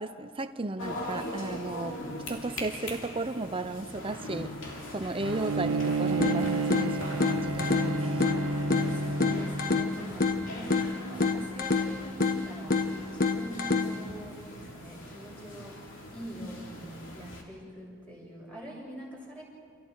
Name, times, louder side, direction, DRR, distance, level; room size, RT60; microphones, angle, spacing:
voice 1, 0.0-2.0 2.3-4.5 4.9-8.4, right 2 dB, 25° right, 0.7 m, -35 dB
sound 1, 0.8-17.4, left 1 dB, 60° left, 3.2 m, -41 dB
Bowed string instrument, 5.2-9.9, right 2 dB, 65° right, 1.0 m, -30 dB
sound 2, 6.2-14.2, left 3 dB, 45° left, 1.3 m, -29 dB
voice 2, 8.9-19.4, right 1 dB, 5° left, 7.2 m, -44 dB
29.5 x 27.0 x 4.8 m
head